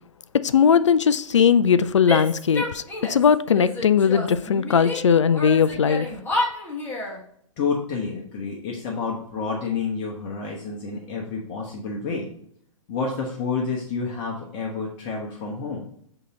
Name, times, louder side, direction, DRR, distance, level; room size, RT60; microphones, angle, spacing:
voice 1, 0.4-2.8 3.1-6.1, left 7 dB, 65° left, 0.4 m, -19 dB
Female speech woman speaking / Yell, 2.0-3.3 3.5-5.0 5.3-7.2, left 2 dB, 10° left, 1.5 m, -29 dB
voice 2, 7.6-12.3 12.9-15.9, left 4 dB, 30° left, 1.0 m, -29 dB
8.1 x 2.9 x 4.0 m
figure-of-eight pair, 115°, 17 cm